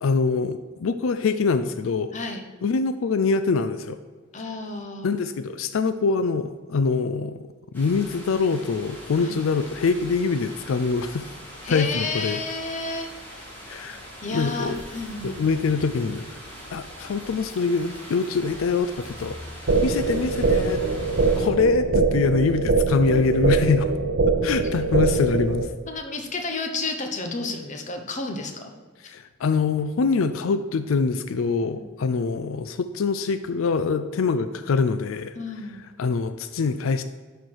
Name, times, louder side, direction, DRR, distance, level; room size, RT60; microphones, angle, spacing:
voice 1, 0.0-2.1 2.6-4.0 5.0-7.4 7.7-11.3 11.7-12.4 13.7-14.0 14.3-14.8 15.2-16.3 16.7-19.4 19.8-20.8 21.4-23.9 24.4-25.7 29.0-35.3 36.0-37.0, left 4 dB, 85° left, 11 dB, 0.4 m, -24 dB
voice 2, 2.1-2.4 4.3-5.1 9.2-9.4 11.6-13.5 14.2-15.4 19.7-19.8 25.1-25.2 25.9-28.7 31.6-31.8 35.4-35.8, left 3 dB, 35° left, 4 dB, 0.9 m, -31 dB
sound 1, 7.7-21.5, equal, 10° left, 2.4 m, -42 dB
sound 2, 19.7-25.7, right 3 dB, 80° right, 0.7 m, -23 dB
11.5 x 4.5 x 4.7 m, 1.5 s
head